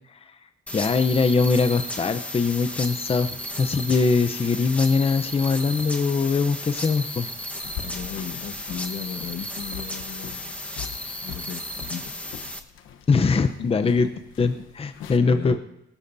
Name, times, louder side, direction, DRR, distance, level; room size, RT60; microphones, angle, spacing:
voice 1, 0.7-3.3 3.6-7.3 13.1-14.1 14.4-15.6, left 4 dB, 30° left, 9 dB, 0.7 m, -22 dB
sound 1, 0.7-12.6, left 1 dB, 5° left, 1.2 m, -34 dB
sound 2, 7.6-15.2, left 10 dB, 90° left, 1.0 m, -42 dB
voice 2, 7.7-10.5 11.2-12.1 13.6-14.0 15.2-15.6, left 7 dB, 65° left, 8 dB, 1.4 m, -36 dB
18.5 x 16.5 x 2.7 m, 0.90 s
cardioid pair, 90°, 20 cm